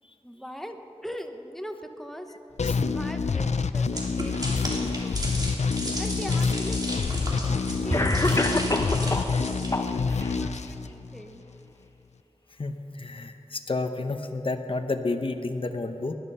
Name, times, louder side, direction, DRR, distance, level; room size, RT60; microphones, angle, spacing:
voice 1, 0.2-0.8 1.0-2.3 2.8-5.2 6.0-8.5 9.0-11.4, equal, 5° left, 5 dB, 1.2 m, -41 dB
sound 1, 2.6-11.5, left 5 dB, 85° left, 0.5 m, -27 dB
sound 2, 3.9-9.7, right 1 dB, 35° right, 3.2 m, -33 dB
Cough, 6.2-6.3 7.3-7.4 7.9-9.3 9.7-10.3, left 1 dB, 30° left, 1.1 m, -26 dB
voice 2, 12.6-16.1, left 3 dB, 50° left, 6 dB, 0.9 m, -30 dB
20.0 x 12.0 x 5.6 m, 3.0 s
wide cardioid pair, 55°, 11 cm